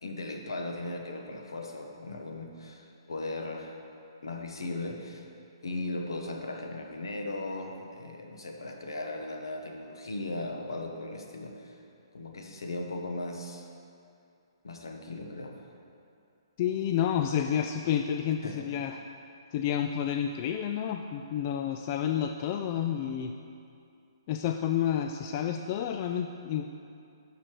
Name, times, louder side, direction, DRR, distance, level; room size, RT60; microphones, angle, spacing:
voice 1, 0.0-3.8 4.2-5.3 5.6-11.8 12.1-13.7 14.6-15.5 18.4-18.7, left 2 dB, 70° left, 3 dB, 1.2 m, -37 dB
voice 2, 16.6-19.0 19.5-23.3 24.3-26.6, left 9 dB, 35° left, 5 dB, 0.4 m, -30 dB
12.0 x 5.0 x 4.7 m, 2.5 s
figure-of-eight pair, 130°, 3 cm